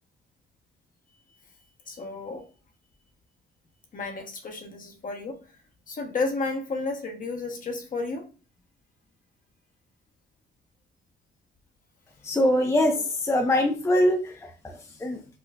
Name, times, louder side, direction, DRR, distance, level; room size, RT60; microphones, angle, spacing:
voice 1, 1.9-2.5 3.9-5.4 5.9-8.3, left 3 dB, 45° left, 4 dB, 0.8 m, -32 dB
voice 2, 12.2-15.4, left 1 dB, 15° left, 4 dB, 0.4 m, -24 dB
4.3 x 2.3 x 2.2 m, 0.36 s
cardioid pair, 90°, 20 cm